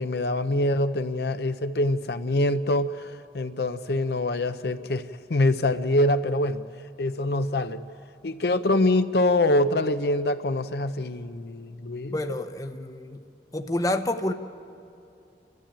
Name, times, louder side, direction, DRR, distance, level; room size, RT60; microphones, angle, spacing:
voice 1, 0.0-6.6 7.0-7.8 8.2-12.2, left 1 dB, 65° left, 10 dB, 0.6 m, -25 dB
voice 2, 12.1-13.2 13.5-14.3, left 1 dB, 20° left, 7 dB, 0.8 m, -28 dB
29.5 x 13.0 x 8.8 m, 2.6 s
head